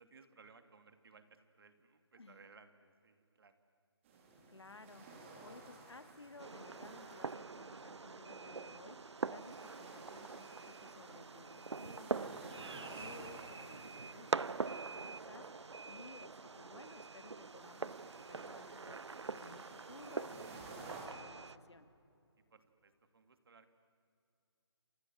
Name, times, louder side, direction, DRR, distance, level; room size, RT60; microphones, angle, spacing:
voice 1, 0.0-3.6 22.5-23.7, right 4 dB, 55° right, 9 dB, 2.7 m, -62 dB
sound 1, 4.0-21.1, right 3 dB, 30° right, 5.3 m, -56 dB
voice 2, 4.5-21.9, left 3 dB, 80° left, 11 dB, 2.3 m, -57 dB
Fireworks, 6.4-21.6, right 4 dB, 85° right, 0.7 m, -44 dB
28.0 x 28.0 x 7.6 m, 2.5 s
figure-of-eight pair, 155°, 14 cm